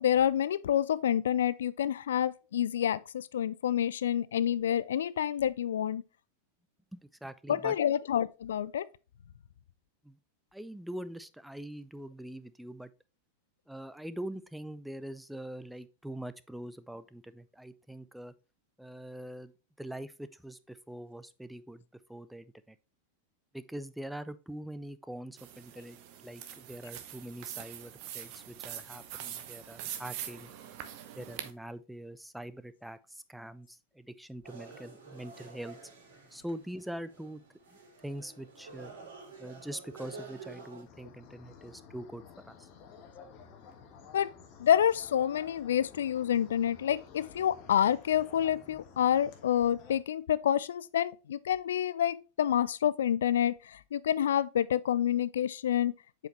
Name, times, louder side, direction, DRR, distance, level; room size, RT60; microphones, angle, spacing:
voice 1, 0.0-6.0 7.5-8.9 44.1-44.3 44.6-55.9, left 10 dB, 65° left, 0.4 m, -28 dB
voice 2, 6.9-7.8 10.0-10.2 10.5-12.9 13.7-18.3 18.8-19.5 19.8-21.8 22.1-22.8 23.5-30.5 31.2-35.8 36.3-37.4 38.0-38.9 39.4-42.7, right 1 dB, 5° right, 0.5 m, -43 dB
sound 1, 25.4-31.5, right 10 dB, 45° right, 0.8 m, -43 dB
sound 2, 34.4-40.8, right 4 dB, 60° right, 2.7 m, -49 dB
sound 3, 40.9-50.0, left 6 dB, 40° left, 1.3 m, -53 dB
7.7 x 4.9 x 3.2 m
figure-of-eight pair, 90°, 0 cm